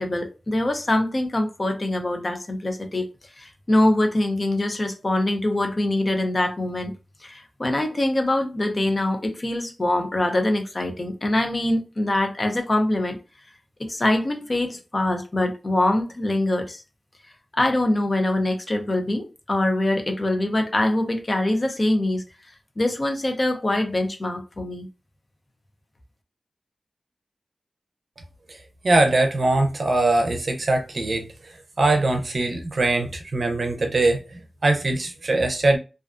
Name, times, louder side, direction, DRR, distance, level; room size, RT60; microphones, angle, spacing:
voice 1, 0.0-3.1 3.4-6.9 7.2-13.2 13.8-16.8 17.5-22.2 22.8-24.9, left 1 dB, 40° left, 0.6 m, -24 dB
voice 2, 28.8-31.3 31.8-34.2 34.6-35.8, right 2 dB, 60° right, 0.6 m, -21 dB
2.4 x 2.2 x 2.4 m
wide cardioid pair, 80°, 0 cm